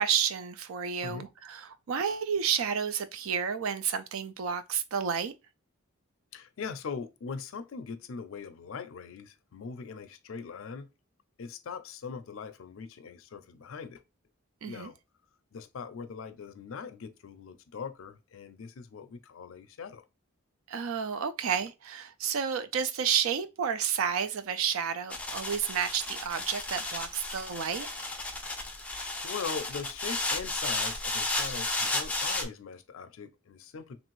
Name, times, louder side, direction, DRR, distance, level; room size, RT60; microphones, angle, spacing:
voice 1, 0.0-5.3 14.6-14.9 20.7-27.9, right 7 dB, 80° right, 0.4 m, -31 dB
voice 2, 6.3-10.9 11.4-14.0 14.7-15.0 15.5-20.0 28.6-28.9 29.2-34.0, left 5 dB, 70° left, 0.4 m, -41 dB
sound 1, 25.1-32.4, left 2 dB, 5° left, 0.3 m, -33 dB
3.1 x 2.5 x 3.0 m
head